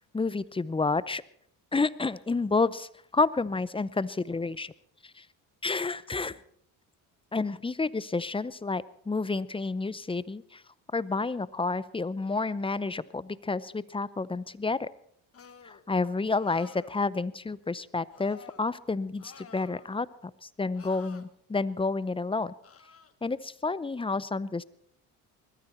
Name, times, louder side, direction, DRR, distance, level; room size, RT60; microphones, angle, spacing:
voice 1, 0.1-1.2 1.7-4.7 5.2-5.3 5.6-6.4 7.3-10.6 10.9-14.9 15.6-22.5 23.2-24.6, left 3 dB, 15° left, 18 dB, 0.6 m, -30 dB
sound 1, 15.3-15.8 16.3-17.0 18.1-18.6 19.2-20.0 20.7-21.2 22.6-23.1, left 6 dB, 35° left, 1.5 m, -51 dB
21.0 x 14.0 x 4.4 m, 0.66 s
supercardioid pair, 75°, 40 cm